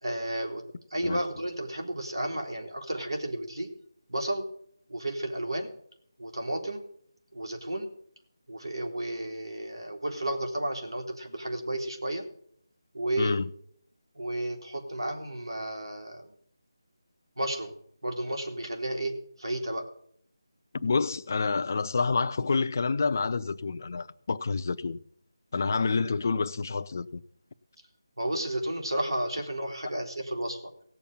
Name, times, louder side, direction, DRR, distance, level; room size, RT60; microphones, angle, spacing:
voice 1, 0.0-0.6 0.9-3.7 4.1-4.4 4.9-5.7 6.2-6.8 7.3-7.9 8.5-12.2 12.9-13.4 14.2-16.3 17.4-17.7 18.0-19.8 28.2-30.6, right 1 dB, 90° right, 3.8 m, -32 dB
voice 2, 13.2-13.5 20.7-25.0 25.5-27.2, left 4 dB, 40° left, 0.6 m, -28 dB
17.5 x 7.2 x 8.9 m
figure-of-eight pair, 170°, 2 cm